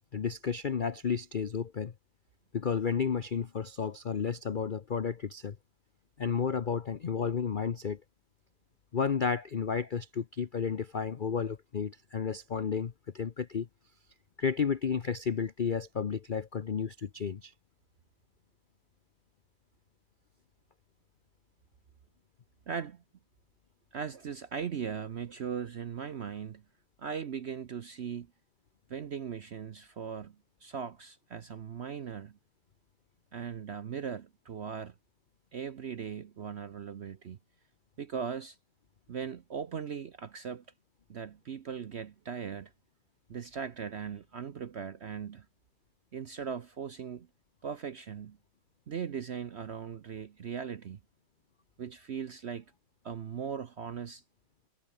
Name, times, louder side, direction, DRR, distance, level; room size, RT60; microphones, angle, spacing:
voice 1, 0.1-1.9 2.5-5.6 6.2-8.0 8.9-13.7 14.4-17.5, left 6 dB, 60° left, 0.5 m, -32 dB
voice 2, 22.7-23.0 23.9-26.6 27.0-28.3 28.9-30.4 30.6-32.4 33.3-34.9 35.5-37.4 38.0-38.6 39.1-40.6 41.1-42.7 43.3-45.5 46.1-47.3 47.6-48.4 48.9-51.0 51.8-52.6 53.0-54.2, right 7 dB, 55° right, 0.8 m, -39 dB
omnidirectional pair, 1.9 m